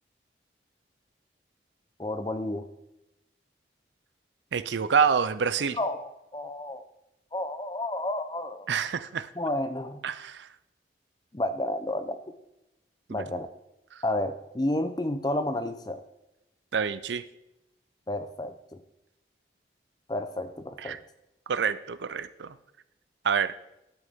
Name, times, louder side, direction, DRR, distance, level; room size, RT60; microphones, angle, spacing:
voice 1, 2.0-2.6 5.8-6.8 7.3-8.7 9.4-10.0 11.3-12.2 13.1-13.5 14.0-16.0 18.1-18.5 20.1-21.0, left 1 dB, 25° left, 9 dB, 0.6 m, -31 dB
voice 2, 4.5-5.8 8.7-9.3 10.0-10.5 13.1-13.2 16.7-17.2 20.8-21.0 21.5-22.5 23.2-23.5, right 6 dB, 90° right, 14 dB, 0.5 m, -27 dB
11.5 x 8.2 x 3.7 m, 0.90 s
head